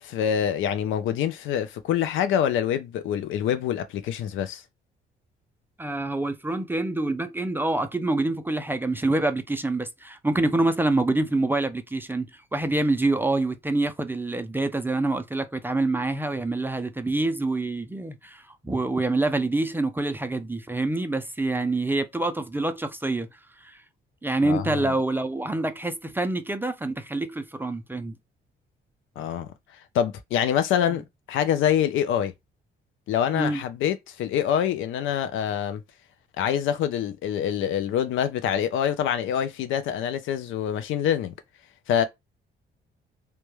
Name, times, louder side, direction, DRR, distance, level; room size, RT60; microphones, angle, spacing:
voice 1, 0.0-4.6 24.4-24.9 29.2-29.5 29.9-31.0 31.3-32.3 33.1-35.8 36.4-41.3 41.9-42.0, left 9 dB, 80° left, 0.5 m, -25 dB
voice 2, 5.8-23.3 23.6-23.8 24.2-28.2 30.9-31.0 33.3-33.6, right 2 dB, 10° right, 0.3 m, -26 dB
2.2 x 2.1 x 3.0 m
cardioid pair, 90°, 20 cm